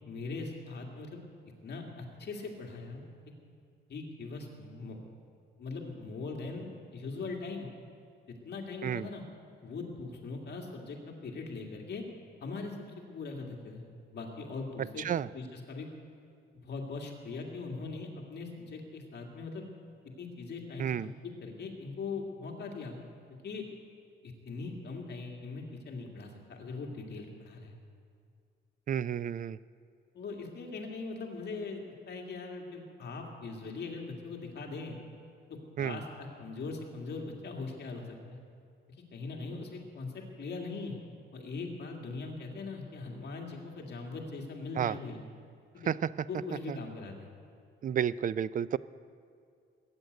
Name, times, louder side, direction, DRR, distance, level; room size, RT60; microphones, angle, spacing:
voice 1, 0.0-1.2 1.6-3.0 3.9-5.0 5.6-7.7 8.3-9.2 9.6-12.0 12.4-13.8 14.1-15.1 15.3-15.9 16.5-19.6 20.2-23.0 23.4-23.7 24.2-27.7 30.1-35.0 35.8-38.4 39.1-41.0 41.3-45.2 45.7-45.9 46.3-47.3, left 3 dB, 55° left, 0 dB, 2.2 m, -41 dB
voice 2, 15.0-15.3 20.8-21.1 28.9-29.6 35.8-36.0 44.8-45.0 45.9-46.1 46.7-46.8 47.8-48.8, right 9 dB, 45° right, 18 dB, 0.4 m, -31 dB
19.5 x 9.3 x 8.0 m, 2.3 s
wide cardioid pair, 145°, 20 cm